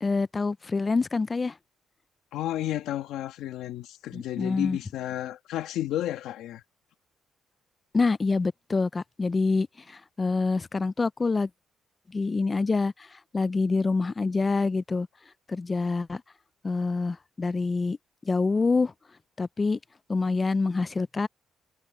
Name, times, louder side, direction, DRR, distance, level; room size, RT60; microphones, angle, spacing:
voice 1, 0.0-1.5 4.1-4.8 7.9-11.5 12.1-15.1 15.5-16.2 16.6-18.0 18.2-18.9 19.4-19.8 20.1-21.3, left 3 dB, 30° left, 0.5 m, -26 dB
voice 2, 2.3-6.6, left 13 dB, 90° left, 2.2 m, -32 dB
cardioid pair, 90°, 0 cm